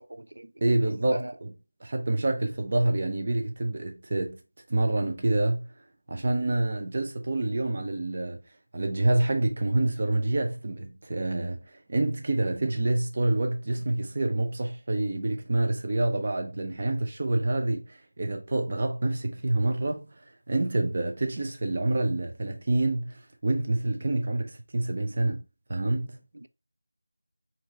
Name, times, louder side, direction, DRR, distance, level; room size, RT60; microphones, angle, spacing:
voice 1, 0.0-0.5 1.1-1.3 26.3-26.5, right 1 dB, 70° right, 0.4 m, -39 dB
voice 2, 0.6-1.5 1.8-4.4 4.7-5.7 6.1-8.4 8.7-11.6 11.9-20.1 20.5-25.4 25.7-26.2, right 2 dB, 35° right, 0.8 m, -27 dB
4.4 x 2.6 x 3.0 m
figure-of-eight pair, 170°, 0 cm